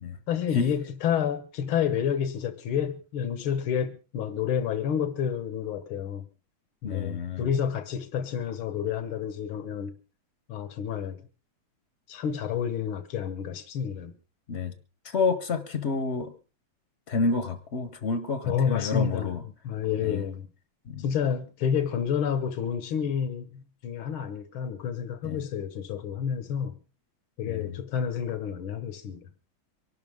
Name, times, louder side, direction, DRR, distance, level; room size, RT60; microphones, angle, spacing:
voice 1, 0.3-6.3 6.8-9.9 10.5-11.2 12.1-14.2 18.5-19.4 19.6-20.5 21.0-26.8 27.4-29.3, left 8 dB, 90° left, 2.1 m, -29 dB
voice 2, 6.8-7.4 14.5-14.7 15.0-16.3 17.1-19.4 20.0-20.2 20.9-21.0 25.2-25.4 27.4-27.7, left 4 dB, 45° left, 1.0 m, -29 dB
24.0 x 12.0 x 3.6 m
omnidirectional pair, 2.2 m